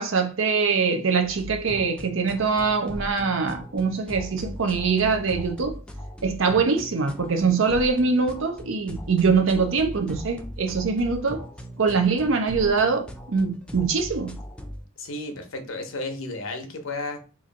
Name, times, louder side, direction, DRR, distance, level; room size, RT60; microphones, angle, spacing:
voice 1, 0.0-5.8 6.2-11.5 11.8-14.4, right 4 dB, 70° right, 0.6 m, -23 dB
sound 1, 1.2-14.8, equal, 5° left, 0.4 m, -39 dB
voice 2, 15.0-17.2, left 2 dB, 75° left, 0.8 m, -33 dB
2.9 x 2.5 x 3.9 m
head